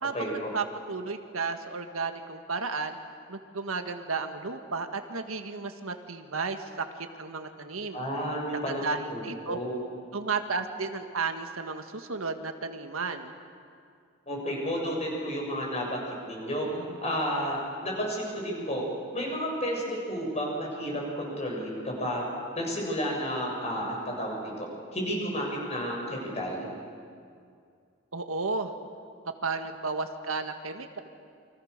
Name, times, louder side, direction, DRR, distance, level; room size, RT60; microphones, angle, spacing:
voice 1, 0.0-3.0 3.3-8.0 8.7-9.6 10.1-13.3 28.1-28.7 29.4-31.0, right 4 dB, 90° right, 6 dB, 1.8 m, -33 dB
voice 2, 7.9-9.2 9.5-9.8 14.3-18.8 19.1-22.2 22.6-24.7 24.9-26.7, equal, 30° left, -1 dB, 7.0 m, -32 dB
29.0 x 25.0 x 6.7 m, 2.3 s
head